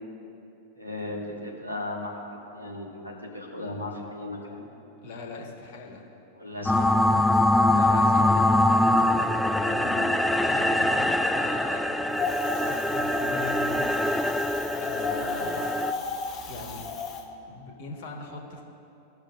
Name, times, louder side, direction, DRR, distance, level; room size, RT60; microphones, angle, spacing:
voice 1, 0.7-4.7 6.3-6.8, left 2 dB, 90° right, -2 dB, 1.4 m, -36 dB
voice 2, 5.0-6.0 7.7-8.8 9.7-13.8 14.7-15.8 16.5-16.9 17.5-18.6, left 4 dB, 50° left, 0 dB, 1.4 m, -40 dB
sound 1, 6.7-15.9, left 1 dB, 5° left, 0.3 m, -23 dB
Wind, 12.1-17.2, left 3 dB, 25° left, 0.9 m, -33 dB
18.0 x 6.3 x 2.5 m, 2.8 s
figure-of-eight pair, 90°, 0 cm